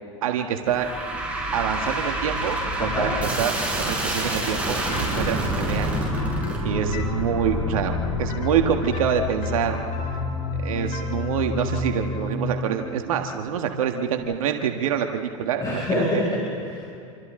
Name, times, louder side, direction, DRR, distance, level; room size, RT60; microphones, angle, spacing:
voice 1, 0.2-0.9 1.5-6.0 6.6-9.9 10.6-15.8, right 8 dB, 85° right, 4 dB, 1.7 m, -26 dB
sound 1, 0.7-11.9, right 1 dB, 5° right, 7.3 m, -29 dB
voice 2, 2.8-3.2 15.6-16.8, left 1 dB, 20° left, -5 dB, 6.9 m, -26 dB
sound 2, 4.9-14.5, left 3 dB, 50° left, 5.3 m, -35 dB
sound 3, 6.7-12.0, left 5 dB, 80° left, 5.1 m, -31 dB
28.0 x 25.5 x 3.9 m, 2.5 s
supercardioid pair, 110°, 17 cm